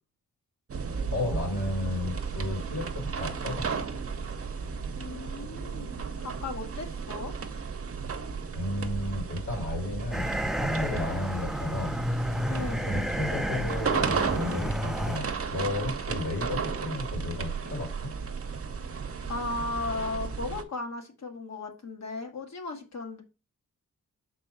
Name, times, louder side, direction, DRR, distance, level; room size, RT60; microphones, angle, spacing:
sound 1, 0.7-20.6, right 5 dB, 50° right, 0.8 m, -34 dB
voice 1, 1.1-3.7 8.5-12.4 12.9-17.9, left 2 dB, 85° left, -2 dB, 3.0 m, -33 dB
voice 2, 4.9-7.3 12.5-12.9 19.3-23.2, left 3 dB, 60° left, 4 dB, 1.6 m, -36 dB
sound 2, 10.1-15.2, equal, ahead, 0.3 m, -31 dB
5.7 x 4.2 x 5.5 m, 0.31 s
wide cardioid pair, 145°, 31 cm